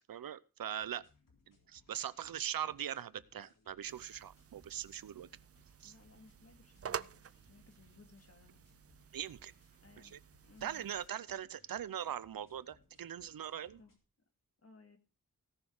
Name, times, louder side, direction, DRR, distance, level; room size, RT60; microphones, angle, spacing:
voice 1, 0.1-1.0 1.5-5.3 5.8-5.9 9.1-9.5 10.0-10.2 10.6-13.8, right 10 dB, 85° right, 18 dB, 0.7 m, -41 dB
sound 1, 0.7-14.0, left 3 dB, 70° left, 3.6 m, -70 dB
sound 2, 3.8-11.1, right 8 dB, 45° right, 0.5 m, -49 dB
voice 2, 5.8-8.6 9.8-10.2 10.4-10.9 13.8-14.0 14.6-15.0, left 3 dB, 45° left, 5 dB, 2.6 m, -61 dB
17.5 x 6.4 x 4.9 m, 0.32 s
wide cardioid pair, 70°, 34 cm